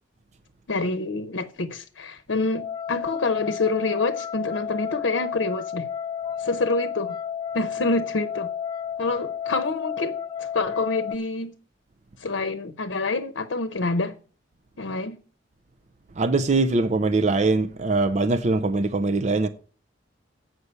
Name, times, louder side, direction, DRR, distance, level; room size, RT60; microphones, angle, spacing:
voice 1, 0.7-5.9 6.4-7.2 7.5-8.5 9.0-11.5 12.2-14.2 14.8-15.2, left 3 dB, 80° left, 0.7 m, -27 dB
sound 1, 2.5-11.2, left 8 dB, 25° left, 0.4 m, -32 dB
voice 2, 16.2-19.5, right 3 dB, 40° right, 0.5 m, -22 dB
8.2 x 5.8 x 8.0 m
head